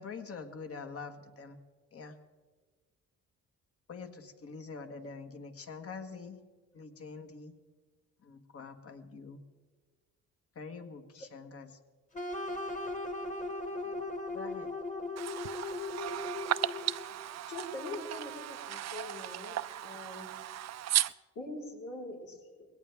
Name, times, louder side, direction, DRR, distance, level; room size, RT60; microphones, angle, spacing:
voice 1, 0.0-1.6 1.9-2.1 3.9-6.4 6.7-7.5 8.2-9.4 10.5-11.7 13.8-14.0 14.3-14.7, left 4 dB, 50° left, 1.7 m, -45 dB
sound 1, 12.1-17.1, left 2 dB, 25° left, 1.8 m, -38 dB
voice 2, 15.2-21.1, right 12 dB, 60° right, 0.5 m, -35 dB
voice 3, 17.5-19.6 19.8-20.3 21.4-22.7, left 2 dB, 85° left, 4.4 m, -43 dB
20.5 x 17.5 x 3.6 m
cardioid pair, 90°, 30 cm